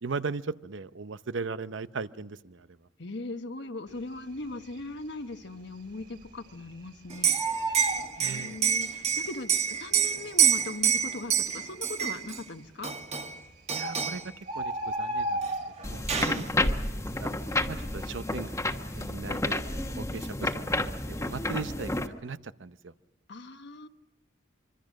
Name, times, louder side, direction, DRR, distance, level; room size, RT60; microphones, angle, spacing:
voice 1, 0.0-2.7 8.2-8.6 13.7-14.2 14.5-15.5 15.8-17.3 17.7-19.6 20.0-22.9, right 4 dB, 70° right, 14 dB, 0.8 m, -38 dB
voice 2, 3.0-7.4 7.7-12.9 16.2-16.5 23.3-23.9, left 2 dB, 60° left, 9 dB, 1.3 m, -39 dB
Bird, 4.4-5.0 5.3-5.4 5.7-6.9 7.1-9.0 9.8-9.9 10.6-10.7 10.9-11.0 11.6-12.1 13.0-13.1 13.5-13.6 13.8-16.1 16.4-16.8 17.1-18.4 18.8-19.0, right 1 dB, 55° right, 3.2 m, -34 dB
Liquid, 7.1-12.4 12.8-13.4 13.7-14.3 15.4-15.5 15.8-16.4, right 8 dB, 35° right, 1.4 m, -27 dB
sound 1, 15.8-22.1, left 2 dB, 15° left, 1.2 m, -31 dB
25.5 x 24.5 x 6.4 m, 0.96 s
head